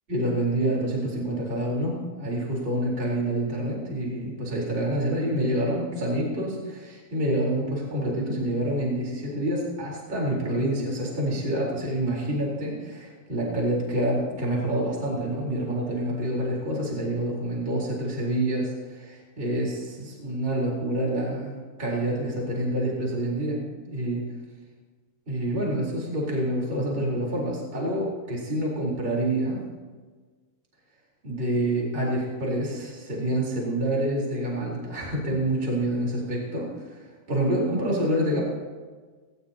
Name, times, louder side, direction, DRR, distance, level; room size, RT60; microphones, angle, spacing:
voice 1, 0.1-21.5 21.8-24.2 25.3-29.6 31.2-38.4, right 1 dB, 15° right, -4 dB, 3.7 m, -27 dB
19.5 x 18.5 x 2.9 m, 1.4 s
omnidirectional pair, 4.8 m